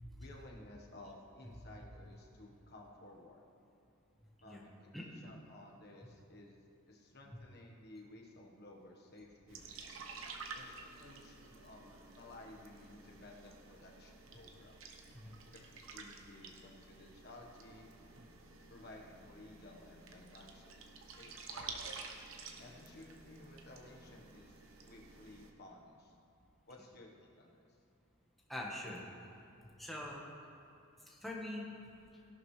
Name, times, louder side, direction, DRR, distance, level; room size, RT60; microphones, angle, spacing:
voice 1, 0.2-3.4 4.4-6.6 6.9-10.0 10.5-14.8 15.5-17.9 18.7-22.1 22.6-24.5 24.8-26.1 26.7-27.6, left 2 dB, 50° left, -1 dB, 1.3 m, -56 dB
sound 1, 9.5-25.5, right 4 dB, 70° right, 1.0 m, -51 dB
voice 2, 28.5-29.0 29.8-30.2 31.1-31.7, left 1 dB, ahead, -4 dB, 1.3 m, -43 dB
17.0 x 11.5 x 3.3 m, 2.6 s
head